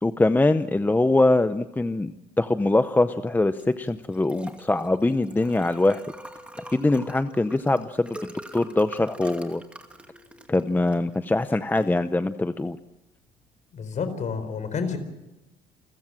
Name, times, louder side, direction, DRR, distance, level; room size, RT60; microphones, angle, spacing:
voice 1, 0.0-6.0 6.7-8.2 8.5-9.6 10.5-12.8, left 2 dB, 10° left, 11 dB, 0.7 m, -23 dB
Liquid, 3.6-13.7, right 1 dB, 5° right, 2.4 m, -45 dB
voice 2, 13.7-15.0, left 5 dB, 45° left, 10 dB, 4.4 m, -29 dB
28.5 x 15.5 x 7.6 m, 1.0 s
cardioid pair, 110°, 17 cm